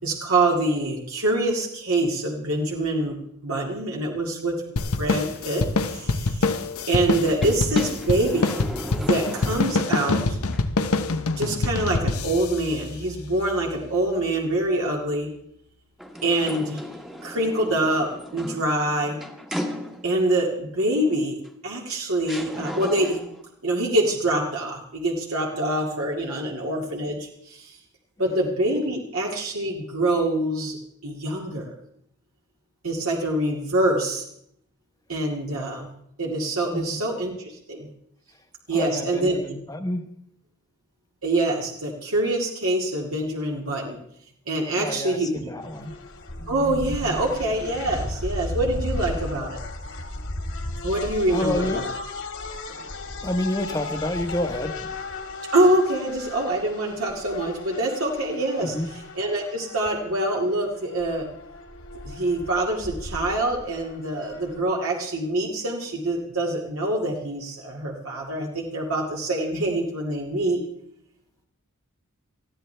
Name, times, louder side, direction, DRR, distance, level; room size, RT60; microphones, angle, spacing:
voice 1, 0.0-3.2 3.4-4.6 4.9-5.7 5.9-6.5 6.9-8.6 9.0-10.4 11.4-15.3 16.2-16.8 17.2-19.2 20.0-21.4 21.6-23.2 23.6-27.8 28.2-30.8 31.0-31.7 32.8-34.2 35.1-35.9 36.2-37.9 38.7-39.4 41.2-44.0 44.5-45.3 46.5-49.6 50.8-51.9 55.5-61.3 62.0-70.6, right 1 dB, 75° right, -1 dB, 2.2 m, -25 dB
sound 1, 4.8-13.6, left 3 dB, 90° left, 0.9 m, -25 dB
sound 2, 7.2-10.1 10.5-10.6 16.0-20.3 21.4-21.5 22.2-23.4, equal, ahead, 1.3 m, -36 dB
voice 2, 38.7-40.1 44.8-46.0 51.3-51.8 53.2-54.8 58.6-58.9, left 1 dB, 15° left, 6 dB, 1.1 m, -29 dB
sound 3, 45.6-64.6, left 2 dB, 65° left, 2.1 m, -35 dB
20.5 x 14.5 x 3.4 m, 0.71 s
head